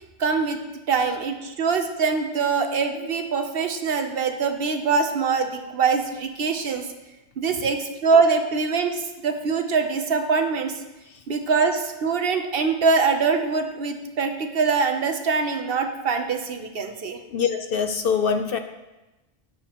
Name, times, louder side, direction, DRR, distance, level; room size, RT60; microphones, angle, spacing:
voice 1, 0.2-0.6 0.9-6.9 7.4-10.8 11.3-17.2, right 5 dB, 60° right, 6 dB, 0.9 m, -23 dB
voice 2, 17.3-18.6, left 6 dB, 60° left, 7 dB, 0.7 m, -23 dB
12.5 x 6.8 x 3.0 m, 1.0 s
omnidirectional pair, 1.2 m